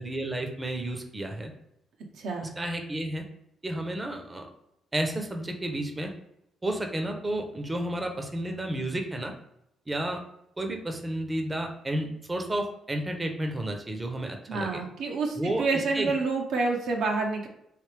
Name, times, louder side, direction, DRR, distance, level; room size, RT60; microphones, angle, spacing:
voice 1, 0.0-1.5 2.6-3.2 3.6-4.5 4.9-6.1 6.6-9.3 9.9-10.2 10.6-14.8 15.4-16.1, right 1 dB, 20° right, 4 dB, 0.6 m, -31 dB
voice 2, 2.2-2.5 14.5-17.5, right 3 dB, 75° right, 1 dB, 0.7 m, -28 dB
3.2 x 2.9 x 3.3 m, 0.79 s
cardioid pair, 90°, 0 cm